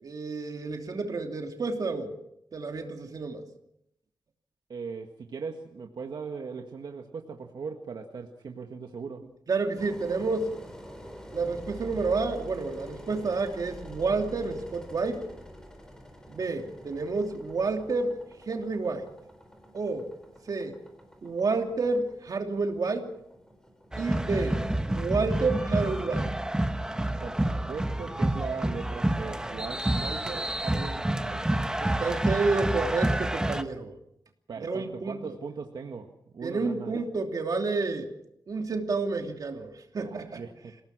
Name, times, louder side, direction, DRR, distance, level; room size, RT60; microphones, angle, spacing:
voice 1, 0.0-2.2 2.5-3.4 9.5-10.6 11.3-15.2 16.3-19.1 19.7-20.1 20.5-20.8 21.2-23.1 24.0-24.6 24.9-26.3 31.8-34.0 34.6-35.4 36.4-38.1 38.5-40.4, right 3 dB, 60° right, 3 dB, 3.0 m, -30 dB
voice 2, 4.7-9.3 27.2-31.5 34.5-37.0 40.0-40.7, right 5 dB, 80° right, 3 dB, 1.6 m, -39 dB
Engine, 9.8-26.7, equal, 10° left, 4.4 m, -47 dB
sound 1, 23.9-33.6, right 1 dB, 10° right, 1.1 m, -28 dB
27.5 x 18.0 x 6.1 m, 0.77 s
wide cardioid pair, 150°, 7 cm